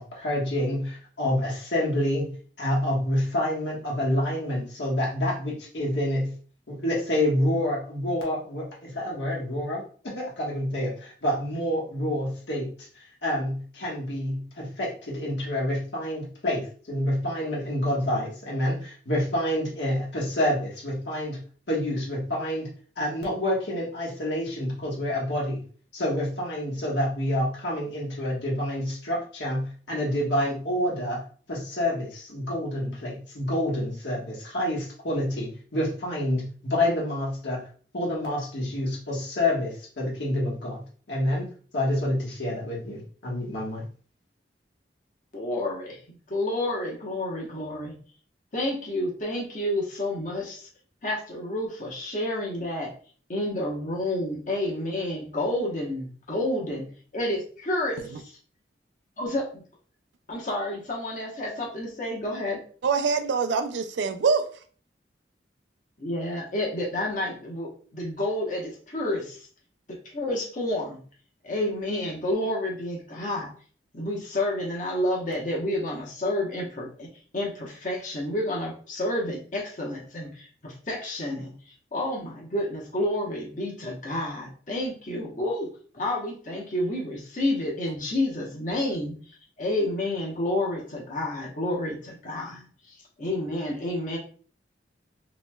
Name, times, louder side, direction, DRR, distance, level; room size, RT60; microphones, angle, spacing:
voice 1, 0.0-6.3 6.7-9.8 10.1-12.7 13.2-21.4 21.7-22.7 23.0-25.6 25.9-31.2 31.5-37.6 37.9-41.5 41.7-43.9, left 1 dB, 80° left, 1.3 m, -28 dB
voice 2, 45.3-47.9 48.5-50.7 51.0-52.9 53.3-56.9 57.1-58.3 59.2-59.6 60.3-62.6 66.0-69.5 69.9-71.0 71.4-73.5 73.9-81.5 81.9-85.7 85.9-89.1 89.6-92.7 93.2-94.2, left 1 dB, 45° left, 1.0 m, -30 dB
voice 3, 62.8-64.5, right 5 dB, 85° right, 0.4 m, -24 dB
3.0 x 3.0 x 2.2 m
head